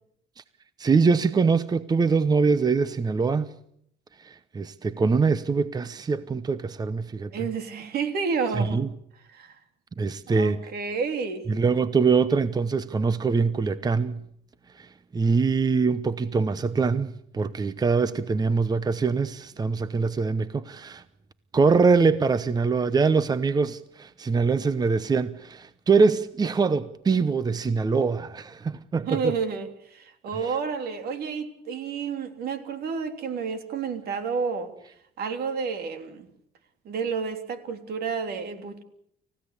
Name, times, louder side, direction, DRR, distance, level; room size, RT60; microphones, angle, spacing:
voice 1, 0.8-3.5 4.2-7.5 8.6-8.9 10.0-10.6 11.5-14.2 14.8-21.0 21.5-29.3, right 4 dB, 25° right, 0.9 m, -23 dB
voice 2, 7.3-8.8 9.3-9.6 10.3-11.4 29.0-34.7 35.2-36.3 36.8-38.8, right 5 dB, 65° right, 3.4 m, -30 dB
30.0 x 16.0 x 8.3 m
cardioid pair, 110°, 17 cm